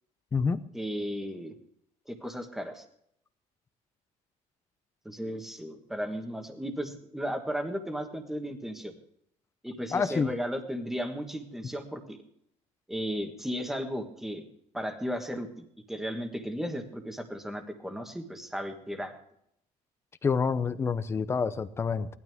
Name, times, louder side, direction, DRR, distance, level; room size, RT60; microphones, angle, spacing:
voice 1, 0.7-1.5 2.1-2.8 5.0-8.9 9.6-12.2 12.9-14.4 14.7-19.1, equal, ahead, 5 dB, 1.5 m, -35 dB
voice 2, 9.9-10.3 20.2-22.1, left 5 dB, 20° left, 12 dB, 0.6 m, -27 dB
18.5 x 12.5 x 3.6 m, 0.70 s
cardioid pair, 175°, 14 cm